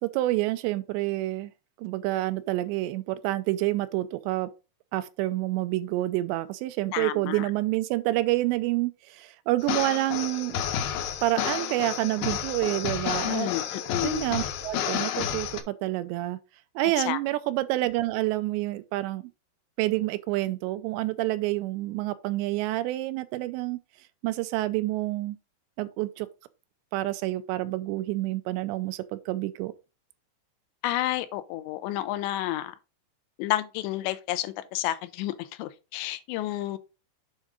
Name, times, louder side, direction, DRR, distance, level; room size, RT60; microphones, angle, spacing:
voice 1, 0.0-1.5 1.8-4.5 4.9-10.6 11.2-13.5 14.0-16.4 16.8-19.2 19.8-23.8 24.2-25.4 25.8-26.3 26.9-29.7, right 17 dB, 90° right, 2.8 m, -28 dB
voice 2, 6.9-7.5 13.2-14.3 17.1-17.2 30.8-32.8 33.4-36.8, left 15 dB, 90° left, 2.9 m, -30 dB
sound 1, 9.6-15.6, left 9 dB, 75° left, 2.4 m, -31 dB
7.7 x 3.7 x 4.7 m
omnidirectional pair, 5.0 m